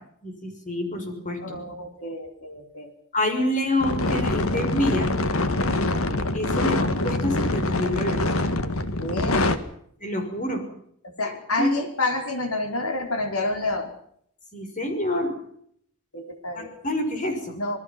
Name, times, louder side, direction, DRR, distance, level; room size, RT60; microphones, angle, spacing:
voice 1, 0.2-1.6 3.1-5.1 6.3-8.2 10.0-10.6 11.6-11.7 14.5-15.3 16.5-17.5, left 1 dB, 35° left, 6 dB, 6.1 m, -27 dB
voice 2, 1.4-2.9 5.8-6.0 9.0-9.6 11.0-13.9 16.1-16.8 17.6-17.8, left 2 dB, 85° left, 5 dB, 4.7 m, -29 dB
sound 1, 3.8-9.6, left 2 dB, 70° left, 1.9 m, -24 dB
27.5 x 20.0 x 6.0 m, 0.67 s
head